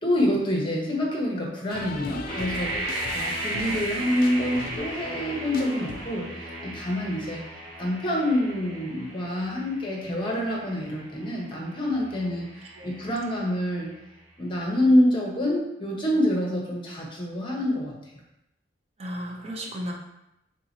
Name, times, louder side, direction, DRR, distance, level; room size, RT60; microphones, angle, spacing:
voice 1, 0.0-7.4 7.8-12.5 12.8-13.9 14.4-17.9, left 1 dB, 30° left, -2 dB, 0.9 m, -26 dB
sound 1, 1.7-6.4, left 3 dB, 55° left, 0.4 m, -39 dB
sound 2, 2.3-14.1, right 2 dB, 5° right, 1.2 m, -36 dB
voice 2, 19.0-19.9, equal, 35° right, -1 dB, 0.6 m, -34 dB
3.6 x 2.9 x 3.9 m, 0.85 s
head